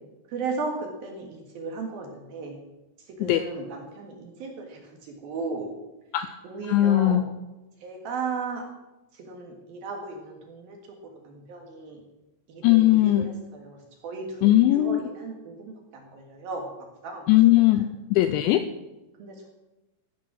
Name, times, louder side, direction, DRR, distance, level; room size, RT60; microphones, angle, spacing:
voice 1, 0.3-2.6 3.1-5.7 6.4-7.3 7.8-8.6 9.1-10.8 11.1-12.0 12.5-16.7 17.0-17.2 17.7-17.9 19.2-19.5, right 4 dB, 60° right, 2 dB, 2.9 m, -36 dB
voice 2, 6.7-7.2 12.6-13.3 14.4-15.0 17.3-18.6, left 14 dB, 90° left, 10 dB, 2.6 m, -19 dB
16.5 x 9.5 x 6.2 m, 1.0 s
omnidirectional pair, 5.9 m